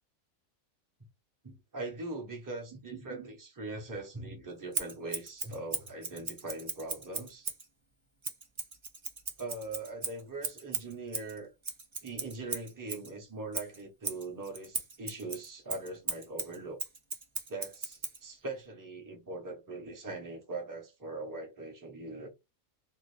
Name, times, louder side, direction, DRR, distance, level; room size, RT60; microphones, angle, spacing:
voice 1, 1.4-7.5 9.4-11.5 12.0-16.8 17.5-22.3, right 2 dB, 15° right, 0.8 m, -41 dB
Scissors, 4.7-7.7 8.2-13.1 13.5-18.2, right 4 dB, 50° right, 0.3 m, -38 dB
2.7 x 2.4 x 3.2 m
omnidirectional pair, 1.5 m